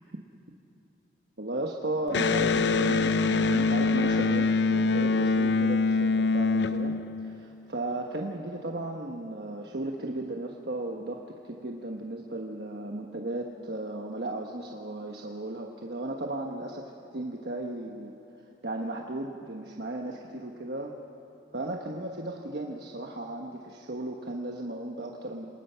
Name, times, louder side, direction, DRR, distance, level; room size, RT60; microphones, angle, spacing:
voice 1, 1.4-18.1 18.6-20.9 21.5-25.5, right 2 dB, 65° right, 1 dB, 1.3 m, -35 dB
Electric guitar, 2.1-7.6, left 4 dB, 75° left, 0.7 m, -24 dB
26.5 x 20.0 x 5.7 m, 3.0 s
head